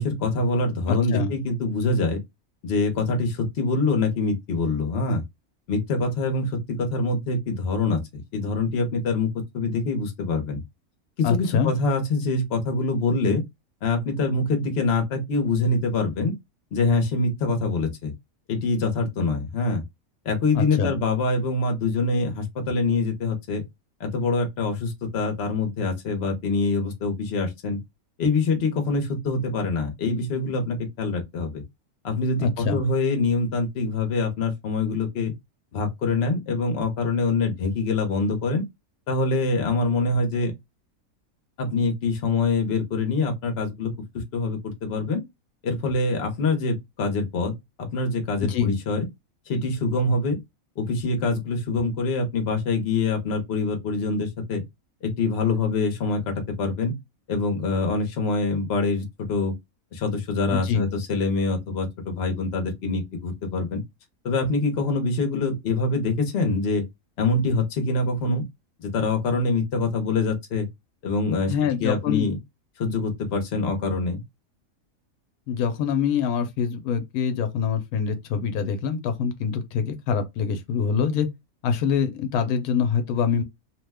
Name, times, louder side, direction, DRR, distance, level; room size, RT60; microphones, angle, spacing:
voice 1, 0.0-2.2 2.6-5.2 5.7-8.0 8.3-9.3 9.5-10.6 11.2-13.4 13.8-16.3 16.7-18.1 18.5-19.8 20.2-23.6 24.0-27.8 28.2-31.6 32.0-35.3 35.7-38.6 39.1-40.5 41.6-43.9 44.3-45.2 45.6-47.5 47.8-49.1 49.5-50.4 50.8-54.6 55.0-56.9 57.3-59.5 59.9-63.8 64.2-66.8 67.2-68.4 68.8-70.7 71.0-71.5 71.8-72.4 72.8-74.2, left 3 dB, 50° left, 0.9 m, -25 dB
voice 2, 0.9-1.3 11.2-11.7 20.5-20.9 32.4-32.8 48.4-48.7 60.5-60.8 71.5-72.3 75.5-81.3 81.6-83.4, left 6 dB, 85° left, 1.1 m, -25 dB
2.7 x 2.1 x 3.3 m
omnidirectional pair, 1.5 m